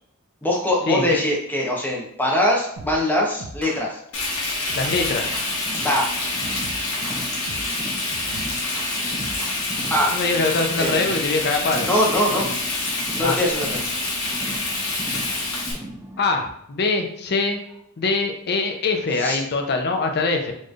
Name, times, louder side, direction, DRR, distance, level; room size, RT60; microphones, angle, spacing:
voice 1, 0.4-4.0 5.8-6.1 6.6-6.7 9.9-10.1 10.7-10.9 11.8-12.5 13.2-13.8 19.2-19.4, left 1 dB, 10° left, -2 dB, 0.8 m, -22 dB
sound 1, 2.8-3.1 3.4-3.8 4.7-5.5 6.4-7.8 8.1-9.6, right 2 dB, 85° right, 0.6 m, -38 dB
Frying (food), 4.1-15.7, left 2 dB, 85° left, 1.2 m, -27 dB
voice 2, 4.8-5.3 10.1-11.9 13.2-13.4 16.2-17.6 18.0-20.5, left 3 dB, 50° left, 4 dB, 0.6 m, -23 dB
Car, 5.1-16.2, right 1 dB, 10° right, 0.3 m, -38 dB
4.3 x 3.1 x 2.4 m, 0.71 s
head